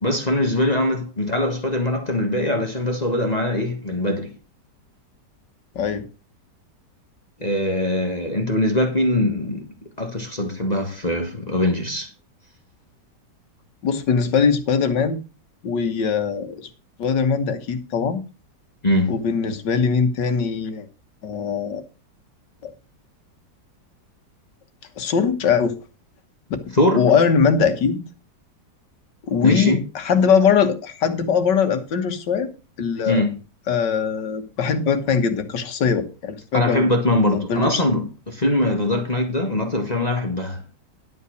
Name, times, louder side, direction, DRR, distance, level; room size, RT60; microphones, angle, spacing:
voice 1, 0.0-4.3 7.4-9.7 10.0-12.1 18.8-19.2 26.7-27.0 29.4-29.8 33.1-33.3 36.5-40.6, left 1 dB, 25° left, 1.6 m, -22 dB
voice 2, 5.8-6.1 13.8-15.2 15.6-16.7 17.0-18.2 19.1-20.9 21.2-21.8 22.6-22.7 25.0-25.7 26.9-28.0 29.2-32.5 32.8-33.2 33.7-36.9 37.3-37.8, left 6 dB, 85° left, 2.0 m, -21 dB
11.5 x 5.6 x 6.4 m
omnidirectional pair, 1.8 m